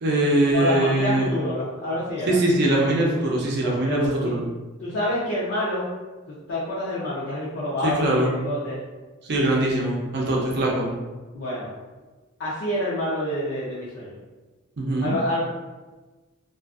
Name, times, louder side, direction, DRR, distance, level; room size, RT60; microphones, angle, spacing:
voice 1, 0.0-1.3 2.3-4.4 7.8-8.3 9.2-10.9 14.8-15.1, right 1 dB, 55° right, -2 dB, 0.5 m, -22 dB
voice 2, 0.5-2.4 3.6-4.4 4.8-5.9 6.3-8.8 11.3-11.7 12.4-14.2 15.0-15.4, left 1 dB, 60° left, -8 dB, 0.5 m, -27 dB
2.4 x 2.4 x 2.4 m, 1.2 s
head